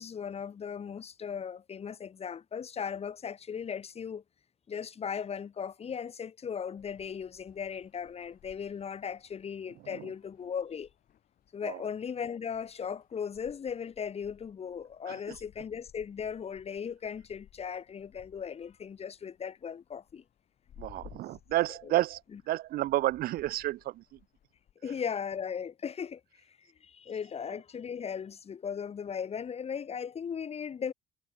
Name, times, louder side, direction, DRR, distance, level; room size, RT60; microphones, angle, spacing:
voice 1, 0.0-4.2 4.7-10.9 11.5-20.2 21.9-22.0 22.3-22.4 24.8-26.2 26.5-30.9, left 7 dB, 35° left, 1.9 m, -37 dB
sound 1, 6.8-24.7, left 10 dB, 55° left, 5.7 m, -60 dB
voice 2, 15.1-15.4 20.8-22.2 22.5-24.2, right 15 dB, 60° right, 0.4 m, -31 dB
cardioid pair, 110°, 17 cm